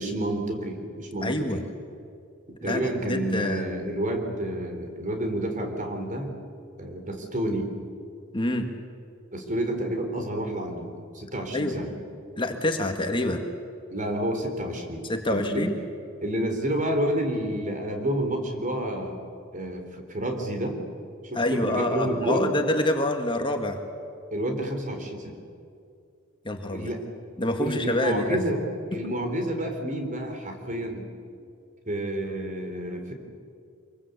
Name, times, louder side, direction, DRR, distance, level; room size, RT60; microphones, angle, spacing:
voice 1, 0.0-1.6 2.6-6.3 6.8-7.7 9.3-11.9 13.9-15.7 16.2-19.2 19.5-20.8 21.2-22.5 24.3-25.3 26.7-27.1 27.6-28.6 28.9-31.0 31.9-33.1, right 1 dB, 40° right, 4 dB, 3.9 m, -29 dB
voice 2, 1.2-1.6 2.6-3.7 8.3-8.7 11.5-11.7 12.4-13.4 15.1-15.7 21.3-23.8 26.5-26.9 27.4-28.4 29.0-29.1, left 1 dB, 25° left, 4 dB, 1.9 m, -26 dB
26.0 x 22.5 x 8.4 m, 2.5 s
head